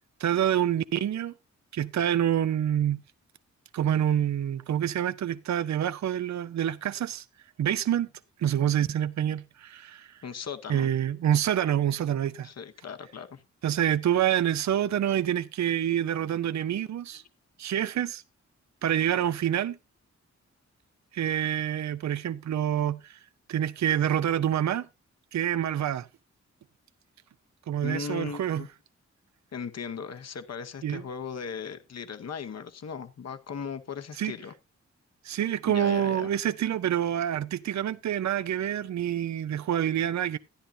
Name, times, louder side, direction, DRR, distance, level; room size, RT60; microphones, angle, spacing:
voice 1, 0.2-1.3 1.7-3.0 3.7-7.2 7.6-8.1 8.4-10.2 10.7-12.5 13.6-17.2 17.6-18.2 18.8-19.8 21.1-23.2 23.5-24.9 25.3-26.1 27.7-28.6 30.8-31.0 34.2-34.3 35.2-40.4, right 10 dB, 70° right, 0.5 m, -27 dB
voice 2, 10.2-10.9 12.4-13.4 27.8-28.7 29.5-34.5 35.7-36.3, left 6 dB, 60° left, 0.9 m, -38 dB
13.0 x 10.0 x 2.7 m
wide cardioid pair, 85°, 29 cm